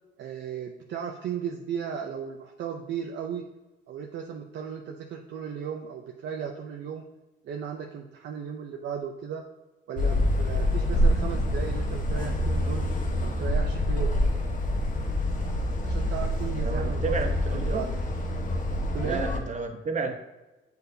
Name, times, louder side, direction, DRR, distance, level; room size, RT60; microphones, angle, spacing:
voice 1, 0.2-3.5 3.9-7.0 7.4-9.4 9.9-12.8 13.2-14.2 15.8-17.9 18.9-19.2, right 7 dB, 65° right, 2 dB, 0.6 m, -36 dB
sound 1, 10.0-19.4, left 1 dB, 40° left, 1.1 m, -26 dB
voice 2, 16.6-17.8 19.0-20.1, right 4 dB, 35° right, 4 dB, 0.9 m, -31 dB
8.0 x 4.4 x 2.7 m, 1.1 s
cardioid pair, 90°, 20 cm